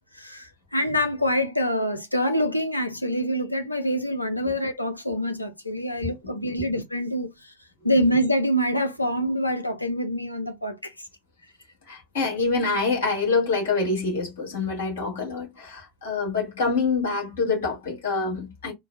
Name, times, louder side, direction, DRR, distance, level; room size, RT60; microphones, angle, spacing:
voice 1, 0.1-7.5 7.8-11.1, equal, 90° left, 0.6 m, -26 dB
voice 2, 11.9-18.7, left 4 dB, 65° left, 2.5 m, -26 dB
4.5 x 2.2 x 2.7 m
figure-of-eight pair, 75°, 0 cm